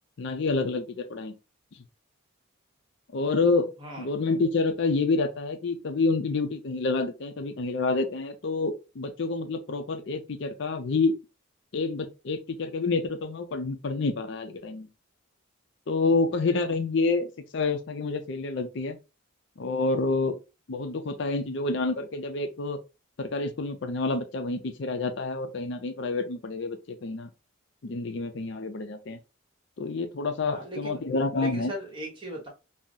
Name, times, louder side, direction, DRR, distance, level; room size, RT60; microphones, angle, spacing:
voice 1, 0.2-1.3 3.1-3.7 4.0-11.1 11.7-14.9 15.9-19.0 19.6-20.4 20.7-22.8 23.2-27.3 27.8-29.2 29.8-31.7, left 3 dB, 55° left, 0.4 m, -28 dB
voice 2, 30.5-31.1 31.4-32.5, right 1 dB, 20° right, 1.0 m, -38 dB
3.7 x 2.0 x 2.6 m
head